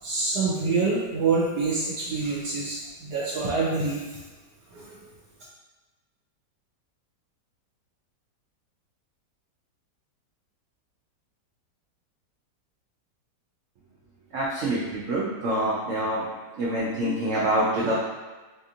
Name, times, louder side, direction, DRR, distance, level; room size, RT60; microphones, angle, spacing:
voice 1, 0.0-4.2 4.7-5.0, right 4 dB, 70° right, -5 dB, 1.1 m, -26 dB
voice 2, 14.3-16.2 16.6-17.9, right 1 dB, 90° right, -6 dB, 0.6 m, -26 dB
4.1 x 2.5 x 2.7 m, 1.2 s
omnidirectional pair, 2.0 m